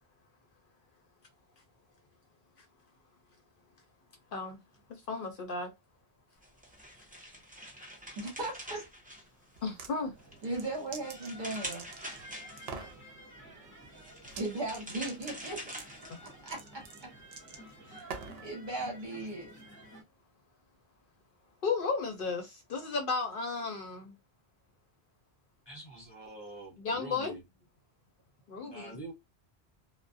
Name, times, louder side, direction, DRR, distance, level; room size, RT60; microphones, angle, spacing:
voice 1, 4.9-5.7 9.6-10.1 21.6-24.1 26.8-27.4 28.5-28.9, left 4 dB, 65° left, 0.7 m, -34 dB
sound 1, 6.4-9.8 10.2-12.9 13.8-16.5, equal, 10° right, 0.5 m, -45 dB
voice 2, 8.2-8.8 10.4-11.9 14.4-15.6 16.2-16.8 17.9-18.1 18.4-19.5, right 2 dB, 50° right, 1.2 m, -37 dB
sound 2, 9.5-9.9 10.4-12.2 12.6-13.0 14.2-14.5 14.7-18.5, right 5 dB, 70° right, 0.8 m, -45 dB
sound 3, 9.7-20.0, equal, 10° left, 1.1 m, -53 dB
voice 3, 25.7-27.4 28.6-29.1, right 1 dB, 25° left, 0.7 m, -45 dB
2.3 x 2.1 x 2.5 m
omnidirectional pair, 1.1 m